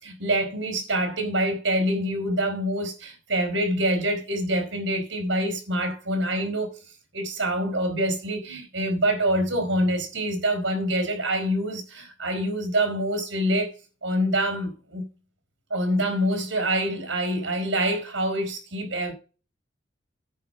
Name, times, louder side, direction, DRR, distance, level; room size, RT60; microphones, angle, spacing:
voice 1, 0.0-6.8 7.1-13.7 14.0-15.0 15.7-19.1, right 1 dB, 85° right, 4.5 m, -26 dB
9.8 x 5.8 x 6.6 m
head